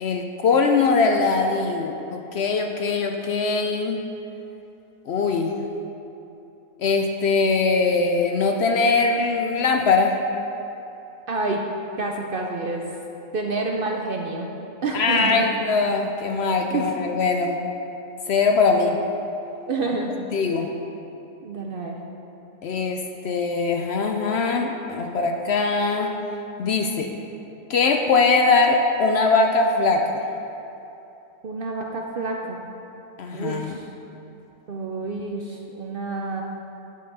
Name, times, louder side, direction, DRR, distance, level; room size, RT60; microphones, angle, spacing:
voice 1, 0.0-4.0 5.1-5.5 6.8-10.2 14.9-17.6 18.3-19.0 20.3-20.7 22.6-26.1 26.6-27.1 27.7-30.2 33.2-33.8, left 4 dB, 65° left, 4 dB, 0.7 m, -21 dB
voice 2, 11.3-11.6 12.0-12.8 13.3-14.5 14.8-15.5 16.7-16.9 19.7-20.1 21.4-22.0 31.4-32.7 33.3-33.9 34.7-36.4, right 3 dB, 55° right, 1 dB, 0.7 m, -28 dB
9.5 x 5.7 x 5.4 m, 2.9 s
omnidirectional pair, 1.4 m